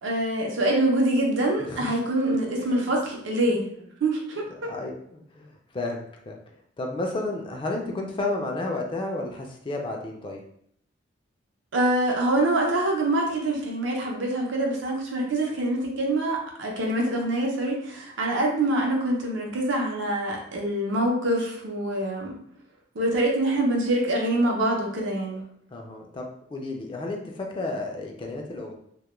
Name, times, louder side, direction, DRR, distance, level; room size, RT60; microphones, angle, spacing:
voice 1, 0.0-3.6 4.0-4.7 11.7-22.3 22.9-25.4, right 1 dB, 75° right, 0 dB, 0.6 m, -25 dB
voice 2, 1.6-1.9 2.3-2.9 3.5-3.6 4.6-6.4 6.8-10.4 25.7-28.8, left 2 dB, 25° left, 1 dB, 0.3 m, -32 dB
2.2 x 2.1 x 3.0 m, 0.68 s
head